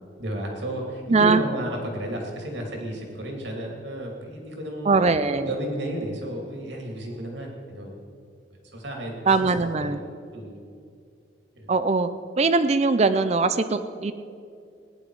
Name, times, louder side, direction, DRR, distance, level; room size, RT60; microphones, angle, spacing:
voice 1, 0.2-5.0 5.4-8.0 8.7-9.9 10.3-10.6 11.5-11.7, right 1 dB, 70° right, 0 dB, 2.7 m, -33 dB
voice 2, 1.1-1.4 4.9-5.5 9.3-10.0 11.7-12.1 12.4-14.1, right 3 dB, 35° right, 11 dB, 0.5 m, -21 dB
18.0 x 10.0 x 4.8 m, 2.4 s
head